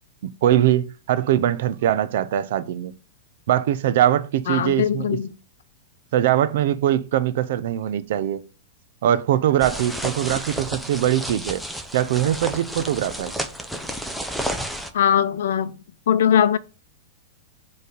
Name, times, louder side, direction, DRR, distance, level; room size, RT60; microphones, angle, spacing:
voice 1, 0.2-3.0 3.5-5.2 6.1-8.4 9.0-11.6 11.9-13.3, right 11 dB, 50° right, 0.5 m, -22 dB
voice 2, 4.5-5.3 14.9-15.7 16.1-16.6, left 9 dB, 70° left, 0.6 m, -20 dB
sound 1, 9.6-14.9, right 1 dB, ahead, 0.5 m, -31 dB
6.9 x 3.2 x 5.0 m
supercardioid pair, 175°, 0 cm